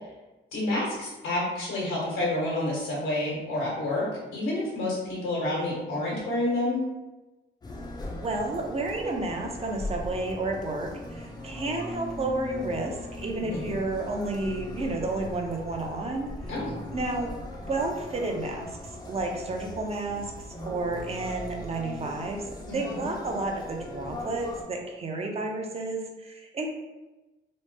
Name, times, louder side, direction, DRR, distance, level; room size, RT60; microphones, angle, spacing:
voice 1, 0.5-6.8 13.4-13.7 16.5-16.7 22.7-23.0, left 1 dB, 90° left, -5 dB, 1.3 m, -29 dB
sound 1, 7.6-24.6, left 1 dB, 20° left, 0.6 m, -39 dB
voice 2, 8.2-16.3 16.9-17.3 17.7-18.7 19.1-26.7, right 2 dB, 30° right, 1 dB, 0.6 m, -31 dB
3.0 x 2.0 x 3.3 m, 1.1 s
cardioid pair, 90°, 20 cm